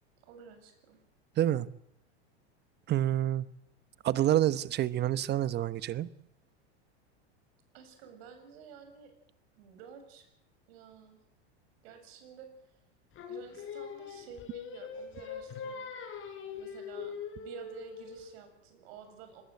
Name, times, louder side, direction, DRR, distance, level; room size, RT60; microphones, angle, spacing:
voice 1, 0.3-1.0 7.7-9.1 9.6-10.2 10.7-11.2 11.8-12.8 13.3-16.1 16.6-19.4, right 7 dB, 65° right, 6 dB, 7.6 m, -51 dB
voice 2, 1.4-1.7 2.9-3.5 4.0-6.1, right 12 dB, 30° right, 15 dB, 1.1 m, -28 dB
Singing, 13.2-18.4, left 6 dB, 35° left, 5.8 m, -42 dB
24.0 x 21.0 x 8.0 m, 0.79 s
supercardioid pair, 125°, 33 cm